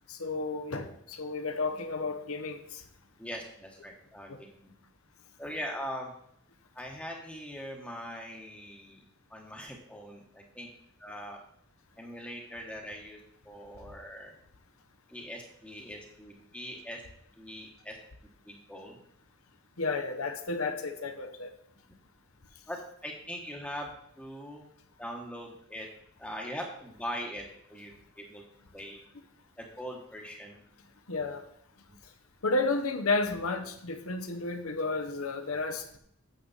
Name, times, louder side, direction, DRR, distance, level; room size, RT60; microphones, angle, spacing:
voice 1, 0.1-2.8 19.8-21.5 31.1-31.4 32.4-36.0, left 3 dB, 85° left, 7 dB, 1.0 m, -32 dB
voice 2, 3.2-4.7 5.4-6.1 6.7-9.0 9.3-10.7 11.0-11.4 12.0-13.2 13.4-14.3 15.1-17.0 17.4-18.0 18.5-19.0 22.7-24.7 25.0-25.9 26.2-27.9 28.2-28.4 28.7-29.0 29.6-30.6, equal, 5° left, 0 dB, 1.0 m, -41 dB
9.0 x 6.7 x 4.0 m, 0.69 s
head